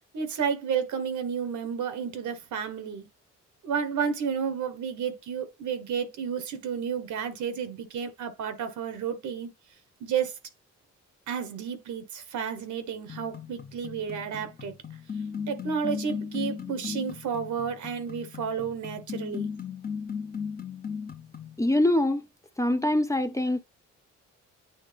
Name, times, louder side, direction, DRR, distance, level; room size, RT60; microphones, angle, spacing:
voice 1, 0.1-3.1 3.6-9.5 10.0-10.3 11.3-14.7 15.5-19.5, right 7 dB, 70° right, 1.3 m, -31 dB
sound 1, 13.1-21.6, left 6 dB, 30° left, 0.9 m, -37 dB
voice 2, 21.6-22.3 22.6-23.6, left 1 dB, 10° left, 0.6 m, -24 dB
9.2 x 3.2 x 3.4 m
cardioid pair, 90°, 30 cm